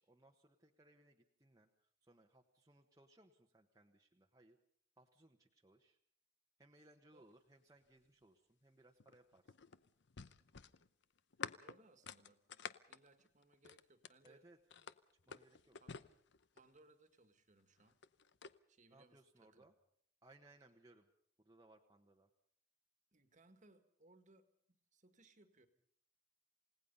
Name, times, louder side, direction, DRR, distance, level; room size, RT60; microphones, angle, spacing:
voice 1, 0.0-4.6 5.0-6.0 6.6-9.5 14.2-14.6 15.3-15.8 18.9-19.7 20.2-21.1 21.4-22.3, right 2 dB, 15° right, 1 dB, 1.2 m, -67 dB
sound 1, 9.0-14.3 14.7-16.8 17.8-18.6, left 6 dB, 60° left, 0.8 m, -50 dB
voice 2, 11.6-12.4 12.9-14.5 15.8-16.1 16.5-18.0 18.7-19.7 23.1-25.7, right 2 dB, 40° right, 9 dB, 1.8 m, -68 dB
29.0 x 17.5 x 5.5 m, 0.63 s
head